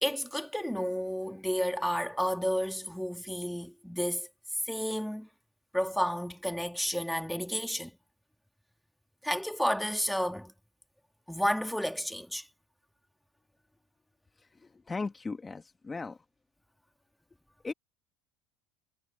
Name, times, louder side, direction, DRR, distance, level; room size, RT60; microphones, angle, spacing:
voice 1, 0.0-4.3 4.7-5.3 5.7-7.9 9.2-10.5 11.3-12.5, equal, ahead, 2.6 m, -31 dB
voice 2, 14.4-16.2 17.6-17.7, left 4 dB, 20° left, 1.9 m, -38 dB
hypercardioid pair, 80°, 0 cm